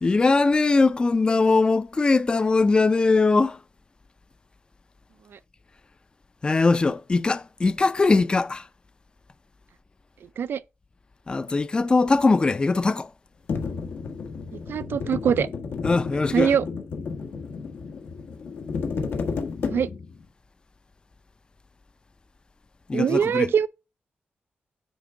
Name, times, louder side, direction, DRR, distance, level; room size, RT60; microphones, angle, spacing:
voice 1, 0.0-3.6 6.4-8.6 11.3-13.1 15.8-16.5 22.9-23.5, left 3 dB, 25° left, 0.4 m, -21 dB
sound 1, 13.5-20.2, left 5 dB, 85° left, 1.3 m, -32 dB
voice 2, 14.7-15.5 16.3-16.7 19.7-19.9 22.9-23.7, right 8 dB, 75° right, 0.4 m, -23 dB
9.3 x 3.5 x 4.8 m
wide cardioid pair, 165°, 4 cm